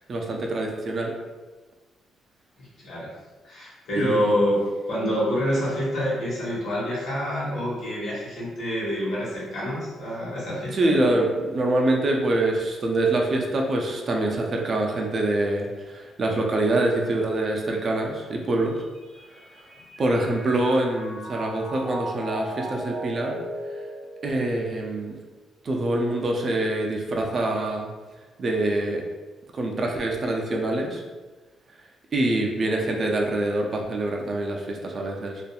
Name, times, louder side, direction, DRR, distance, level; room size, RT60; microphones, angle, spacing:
voice 1, 0.1-1.1 4.0-4.4 10.7-18.8 20.0-23.4 24.2-25.1 25.6-27.9 28.4-29.0 29.5-31.0 32.1-35.4, right 2 dB, 45° right, 1 dB, 0.4 m, -25 dB
voice 2, 2.6-3.1 3.4-4.6 4.9-10.9, equal, 70° left, -7 dB, 1.2 m, -27 dB
Mallet percussion, 18.7-25.1, right 1 dB, 5° right, 1.5 m, -38 dB
2.6 x 2.4 x 2.3 m, 1.3 s
cardioid pair, 90°, 0 cm